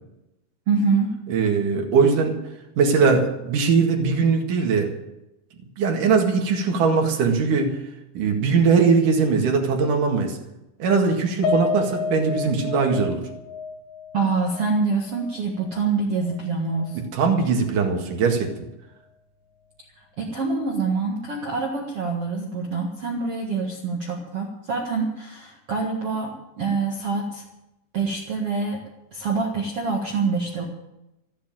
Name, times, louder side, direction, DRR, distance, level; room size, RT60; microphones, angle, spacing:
voice 1, 0.7-1.1 14.1-17.0 20.2-27.4 27.9-28.8 29.1-30.6, right 4 dB, 85° right, 0 dB, 1.3 m, -25 dB
voice 2, 1.3-2.4 2.8-4.9 5.8-7.8 8.1-10.4 10.8-13.2 17.1-18.5, right 5 dB, 55° right, 3 dB, 2.8 m, -20 dB
Piano, 11.4-15.9 16.3-16.4 16.8-17.0, left 4 dB, 70° left, 4.0 m, -30 dB
15.0 x 9.3 x 9.0 m, 0.91 s
omnidirectional pair, 5.6 m